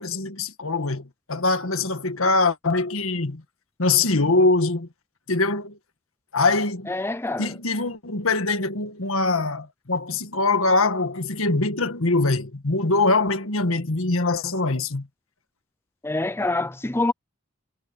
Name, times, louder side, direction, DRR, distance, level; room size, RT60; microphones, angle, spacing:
voice 1, 0.0-3.4 3.8-4.9 5.3-5.8 6.3-6.9 7.4-15.1, left 3 dB, 80° left, 1.7 m, -23 dB
voice 2, 6.9-7.5 16.0-17.1, left 2 dB, 10° left, 0.6 m, -25 dB
head